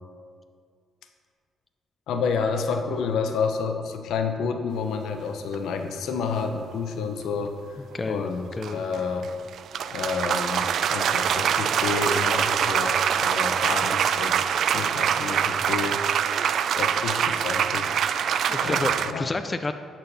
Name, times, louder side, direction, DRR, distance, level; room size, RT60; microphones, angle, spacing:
voice 1, 2.1-7.5 8.1-9.3 9.9-16.0 16.8-17.9 18.6-19.3, left 5 dB, 80° left, 6 dB, 0.8 m, -29 dB
sound 1, 5.5-5.6 8.6-19.1, right 8 dB, 65° right, 0.3 m, -24 dB
voice 2, 7.9-8.3 8.6-8.8 18.1-19.7, left 3 dB, 25° left, 8 dB, 0.4 m, -30 dB
11.5 x 4.5 x 5.4 m, 2.1 s
cardioid pair, 90°, 0 cm